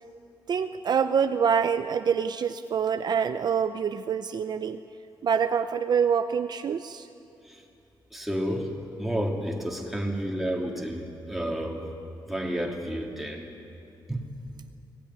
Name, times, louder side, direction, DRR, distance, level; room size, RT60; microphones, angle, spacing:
voice 1, 0.5-4.8 5.2-7.1, right 7 dB, 55° right, 9 dB, 0.7 m, -26 dB
voice 2, 8.1-8.7 9.0-11.9 12.3-13.5 14.1-14.3, equal, ahead, 0 dB, 2.9 m, -31 dB
25.0 x 17.5 x 9.6 m, 2.6 s
wide cardioid pair, 125°, 9 cm